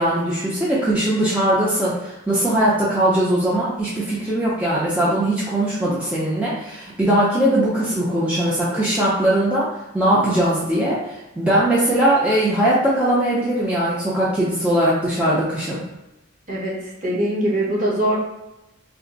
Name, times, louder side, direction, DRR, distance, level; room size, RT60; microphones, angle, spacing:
voice 1, 0.0-9.7 9.9-15.8, right 1 dB, 5° right, -8 dB, 0.5 m, -20 dB
voice 2, 16.5-18.2, right 1 dB, 40° right, -6 dB, 1.1 m, -22 dB
3.3 x 2.0 x 3.8 m, 0.98 s
head